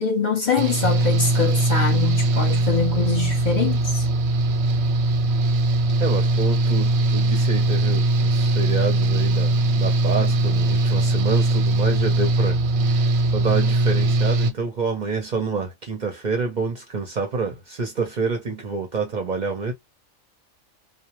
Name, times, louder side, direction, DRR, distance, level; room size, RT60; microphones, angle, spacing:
voice 1, 0.0-4.1, left 5 dB, 45° left, 0.7 m, -24 dB
Engine / Mechanical fan, 0.6-14.5, right 2 dB, 90° right, 1.0 m, -20 dB
voice 2, 6.0-19.7, right 4 dB, 50° right, 0.6 m, -28 dB
2.2 x 2.1 x 2.8 m
omnidirectional pair, 1.4 m